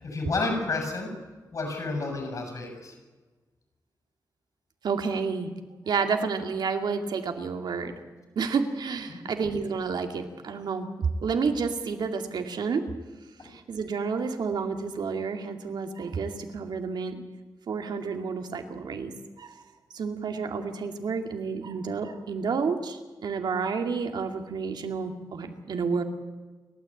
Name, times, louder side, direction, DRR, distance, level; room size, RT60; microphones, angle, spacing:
voice 1, 0.0-1.1 1.5-2.9 9.1-9.4 13.4-13.5, left 3 dB, 50° left, 3 dB, 6.8 m, -31 dB
voice 2, 4.8-5.5 5.9-8.0 8.4-12.9 13.4-17.2 17.7-19.6 19.9-26.0, right 5 dB, 80° right, 5 dB, 2.5 m, -30 dB
30.0 x 13.0 x 8.7 m, 1.3 s
wide cardioid pair, 160°, 7 cm